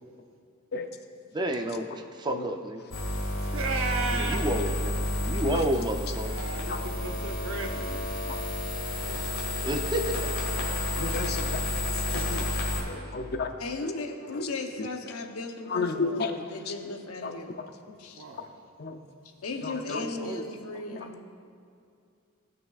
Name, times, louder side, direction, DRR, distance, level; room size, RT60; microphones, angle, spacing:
voice 1, 1.3-2.8 4.1-6.4 9.6-10.2 19.9-20.4 20.9-21.2, right 1 dB, 20° right, 5 dB, 0.5 m, -31 dB
sound 1, 2.9-12.8, left 1 dB, 65° left, 1.8 m, -30 dB
voice 2, 3.4-4.4 6.1-8.0 8.3-8.4 18.1-18.5, right 3 dB, 65° right, 2 dB, 0.8 m, -34 dB
voice 3, 11.0-11.6 12.1-13.5 13.8-13.9 14.3-14.5 14.8-14.9 15.6-16.7 17.2-17.3 17.9-18.0 18.8-19.0 19.6-20.0 21.0-21.1, left 4 dB, 50° left, 7 dB, 0.5 m, -33 dB
voice 4, 13.6-17.6 18.0-18.2 19.4-21.2, left 2 dB, 85° left, 5 dB, 0.8 m, -36 dB
17.0 x 5.8 x 2.4 m, 2.4 s
head